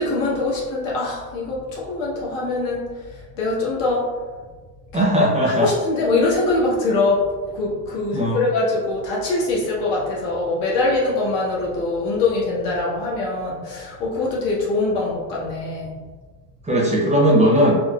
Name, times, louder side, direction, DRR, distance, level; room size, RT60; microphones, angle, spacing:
voice 1, 0.0-2.8 3.4-4.0 4.9-5.0 5.4-16.0, left 2 dB, 80° left, -5 dB, 1.3 m, -23 dB
voice 2, 4.9-5.7 8.1-8.4 16.6-17.8, equal, 15° right, -4 dB, 0.5 m, -17 dB
4.2 x 2.0 x 2.3 m, 1.4 s
cardioid pair, 110°, 44 cm